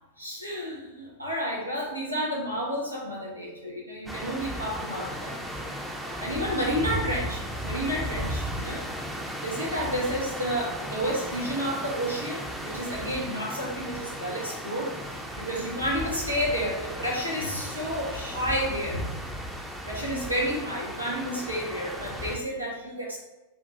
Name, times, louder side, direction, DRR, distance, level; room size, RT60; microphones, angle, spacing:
voice 1, 0.2-5.4 6.2-8.8 9.4-19.2 19.8-23.2, equal, 85° right, -3 dB, 0.6 m, -31 dB
sound 1, 4.1-22.4, equal, 5° right, 0.5 m, -35 dB
5.5 x 2.2 x 2.7 m, 1.0 s
figure-of-eight pair, 90°, 0 cm